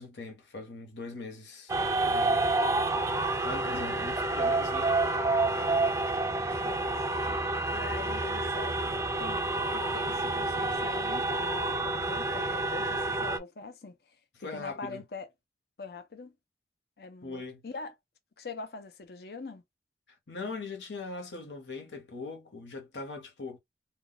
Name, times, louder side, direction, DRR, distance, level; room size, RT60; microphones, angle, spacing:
voice 1, 0.0-1.7 2.0-2.5 3.4-5.0 14.4-15.0 17.2-17.6 20.3-23.6, left 3 dB, 85° left, 1.1 m, -40 dB
sound 1, 1.7-13.4, right 2 dB, 15° right, 0.4 m, -29 dB
voice 2, 3.6-4.1 5.5-7.0 7.7-15.3 15.8-16.3 17.0-17.9 18.4-19.6, left 4 dB, 60° left, 0.6 m, -44 dB
2.3 x 2.3 x 3.9 m
head